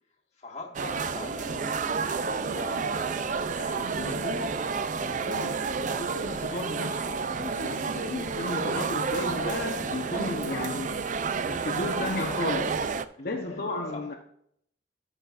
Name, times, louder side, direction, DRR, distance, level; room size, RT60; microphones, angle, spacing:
voice 1, 0.4-4.9 13.2-13.6 13.9-14.1, left 2 dB, 40° left, 1.8 m, -43 dB
sound 1, 0.8-13.1, right 5 dB, 45° right, 0.4 m, -30 dB
voice 2, 4.0-4.7 5.0-14.1, left 2 dB, 55° left, 1.0 m, -34 dB
16.5 x 6.7 x 2.5 m
head